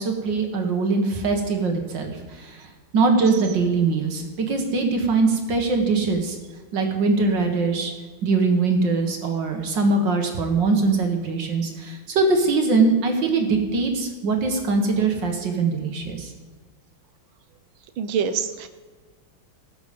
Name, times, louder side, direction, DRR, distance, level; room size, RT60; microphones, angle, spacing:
voice 1, 0.0-2.7 2.9-6.4 6.7-7.9 8.2-16.3, right 3 dB, 60° right, 3 dB, 2.2 m, -22 dB
voice 2, 18.0-18.7, right 7 dB, 75° right, 10 dB, 1.6 m, -25 dB
18.0 x 7.3 x 5.3 m, 1.4 s
omnidirectional pair, 2.3 m